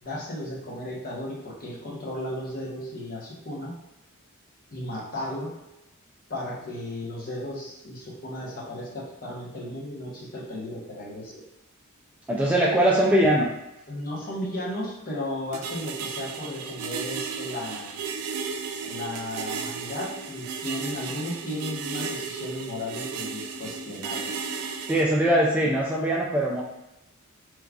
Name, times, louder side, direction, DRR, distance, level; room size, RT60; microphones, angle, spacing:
voice 1, 0.0-3.7 4.7-5.6 6.3-11.4 13.9-18.0 18.8-24.5 25.2-25.3, left 1 dB, 40° left, -6 dB, 1.0 m, -35 dB
voice 2, 12.3-13.5 24.9-26.6, right 1 dB, 5° right, -4 dB, 0.3 m, -21 dB
sound 1, 15.5-25.0, right 5 dB, 90° right, 0.4 m, -34 dB
3.5 x 3.1 x 2.3 m, 0.92 s
head